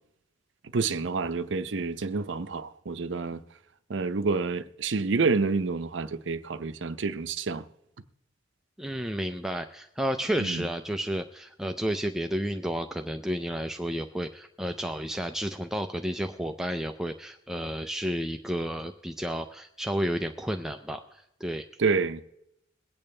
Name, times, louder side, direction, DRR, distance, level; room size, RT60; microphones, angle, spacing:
voice 1, 0.7-3.4 3.9-7.6 10.4-10.7 21.8-22.2, right 4 dB, 65° right, 0.6 m, -28 dB
voice 2, 8.8-21.7, equal, 5° right, 0.4 m, -31 dB
22.0 x 8.7 x 3.3 m
head